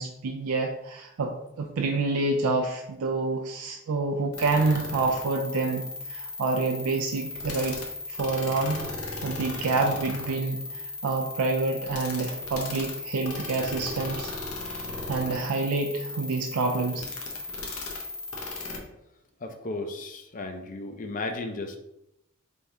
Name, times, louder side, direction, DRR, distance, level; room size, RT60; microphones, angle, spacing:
voice 1, 0.0-7.8 8.1-8.8 9.2-14.3 15.0-17.0, right 3 dB, 80° right, 1 dB, 0.4 m, -28 dB
sound 1, 4.3-18.8, left 3 dB, 80° left, 0.9 m, -36 dB
voice 2, 19.4-21.8, left 2 dB, 35° left, 5 dB, 0.5 m, -34 dB
3.5 x 2.7 x 4.5 m, 0.86 s
head